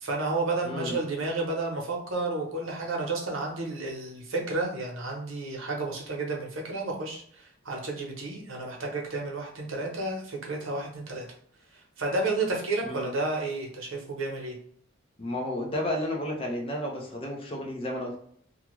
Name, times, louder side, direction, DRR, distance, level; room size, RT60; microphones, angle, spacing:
voice 1, 0.0-11.3 11.7-14.6, right 2 dB, 85° right, 0 dB, 0.8 m, -31 dB
voice 2, 0.6-1.0 12.8-13.1 15.2-18.2, left 1 dB, 30° left, -1 dB, 0.6 m, -32 dB
2.5 x 2.3 x 3.0 m, 0.63 s
head